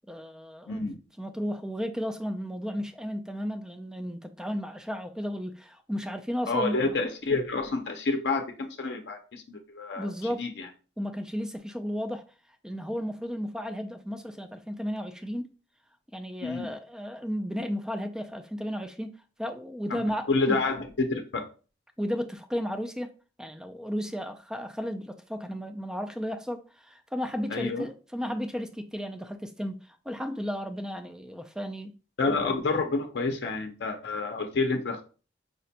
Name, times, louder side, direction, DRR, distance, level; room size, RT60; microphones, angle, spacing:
voice 1, 0.1-0.8 1.2-6.8 10.0-10.4 11.0-12.2 12.6-15.5 16.1-19.1 19.4-20.6 22.0-23.1 23.4-29.8 30.1-31.9, equal, 5° right, 0.3 m, -34 dB
voice 2, 6.5-10.1 10.4-10.7 16.4-16.7 19.9-21.4 27.5-27.8 32.2-35.0, left 3 dB, 75° left, 0.5 m, -29 dB
4.8 x 2.2 x 2.7 m
head